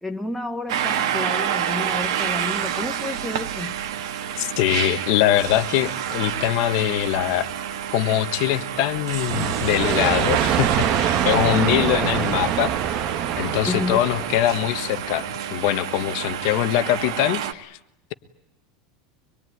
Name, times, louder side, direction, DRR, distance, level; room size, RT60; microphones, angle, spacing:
voice 1, 0.0-3.8 11.5-11.9 13.7-14.0, left 2 dB, ahead, 3 dB, 1.0 m, -30 dB
sound 1, 0.7-17.5, right 9 dB, 85° right, 1.9 m, -29 dB
voice 2, 4.4-7.5 7.9-13.0 13.4-15.2 15.5-17.8, left 13 dB, 50° left, 11 dB, 1.3 m, -23 dB
sound 2, 9.3-14.9, right 9 dB, 35° right, 1.3 m, -24 dB
25.0 x 22.0 x 9.5 m, 0.85 s
supercardioid pair, 180°, 3 cm